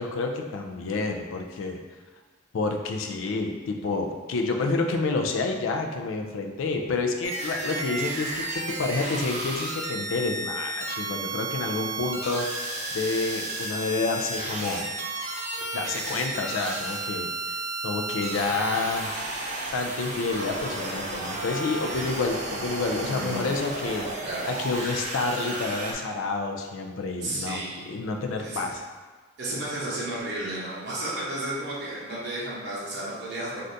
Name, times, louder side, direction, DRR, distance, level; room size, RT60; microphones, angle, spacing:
voice 1, 0.0-1.8 2.5-14.8 15.7-17.3 17.8-19.1 19.7-24.1 24.6-28.8, left 3 dB, 80° left, 3 dB, 0.4 m, -29 dB
sound 1, 7.2-25.9, right 2 dB, 35° right, 0.4 m, -33 dB
voice 2, 23.1-23.4 24.2-24.5 27.2-28.0 28.4-28.6 29.4-33.7, right 1 dB, 55° right, -7 dB, 0.7 m, -33 dB
3.3 x 2.5 x 2.6 m, 1.4 s
head